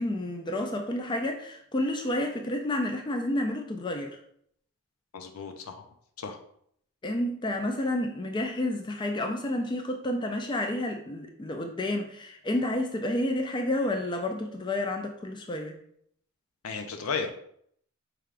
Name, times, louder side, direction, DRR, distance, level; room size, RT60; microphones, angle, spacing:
voice 1, 0.0-4.2 7.0-15.7, left 1 dB, 20° left, 4 dB, 0.3 m, -30 dB
voice 2, 5.1-5.7 6.2-6.4 16.6-17.3, left 5 dB, 80° left, 6 dB, 0.5 m, -34 dB
4.5 x 3.4 x 2.4 m, 0.67 s
head